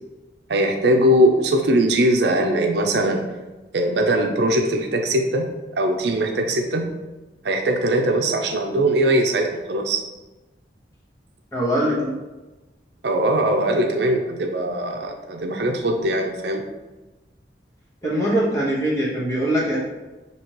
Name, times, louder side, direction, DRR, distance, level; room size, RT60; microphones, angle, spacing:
voice 1, 0.5-3.3 3.7-7.0 7.4-10.0 13.0-16.7, right 1 dB, 70° right, 3 dB, 0.5 m, -21 dB
voice 2, 11.5-12.2 18.0-19.8, right 1 dB, 15° left, -5 dB, 1.1 m, -22 dB
6.1 x 2.9 x 3.0 m, 1.1 s
head